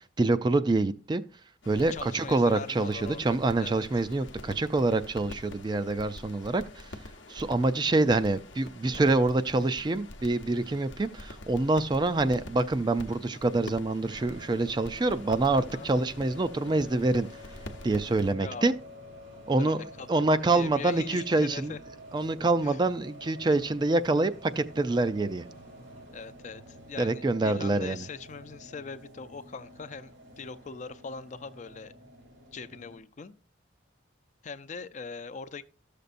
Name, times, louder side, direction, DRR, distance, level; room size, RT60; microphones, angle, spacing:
voice 1, 0.2-1.2 1.7-6.9 7.3-17.3 17.8-18.7 19.5-19.8 20.1-21.7 22.1-25.4 27.0-28.0, right 2 dB, 25° right, 0.4 m, -26 dB
sound 1, 1.6-18.3, left 1 dB, 75° left, 0.8 m, -46 dB
voice 2, 1.9-3.2 3.6-3.9 15.5-15.9 18.4-18.7 19.6-21.8 22.6-22.8 26.1-31.9 32.5-33.3 34.4-35.6, left 5 dB, 40° left, 0.4 m, -41 dB
sound 2, 14.0-33.0, equal, 90° right, 2.6 m, -49 dB
13.5 x 6.7 x 2.5 m
head